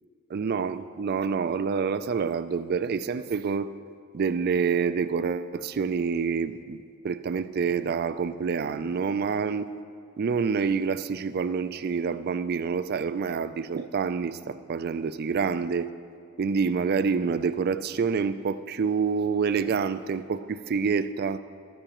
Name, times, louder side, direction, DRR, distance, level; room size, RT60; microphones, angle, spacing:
voice 1, 0.3-3.7 4.1-6.8 7.0-9.7 10.2-15.9 16.4-21.4, right 5 dB, 45° right, 13 dB, 0.3 m, -27 dB
14.5 x 12.5 x 3.0 m, 2.3 s
head